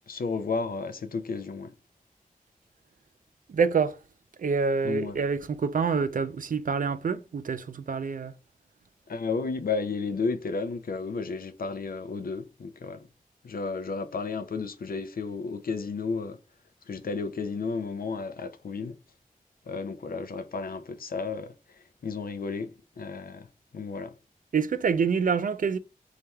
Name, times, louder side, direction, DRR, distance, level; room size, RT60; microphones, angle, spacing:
voice 1, 0.1-1.7 4.8-5.2 9.1-13.0 13.4-16.4 16.9-18.9 19.7-21.5 22.0-23.5 23.7-24.1, left 4 dB, 80° left, 0.5 m, -32 dB
voice 2, 3.5-4.0 4.4-8.3 24.5-25.8, right 5 dB, 65° right, 0.4 m, -26 dB
4.1 x 3.2 x 2.3 m
wide cardioid pair, 70°, 15 cm